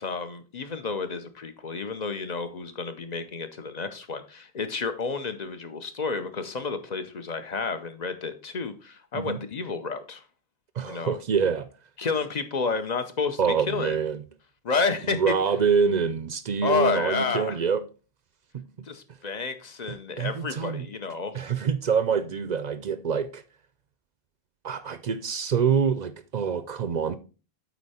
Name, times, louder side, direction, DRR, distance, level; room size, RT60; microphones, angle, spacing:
voice 1, 0.0-10.2 10.8-11.2 12.0-13.4 13.7-14.0 14.6-15.3 16.6-17.6 18.9-21.4, left 4 dB, 45° left, 0.8 m, -30 dB
voice 2, 10.8-11.7 13.4-14.2 15.1-17.8 20.2-20.8 21.3-23.4 24.6-27.2, right 6 dB, 55° right, 0.6 m, -26 dB
8.2 x 4.6 x 4.2 m
omnidirectional pair, 1.0 m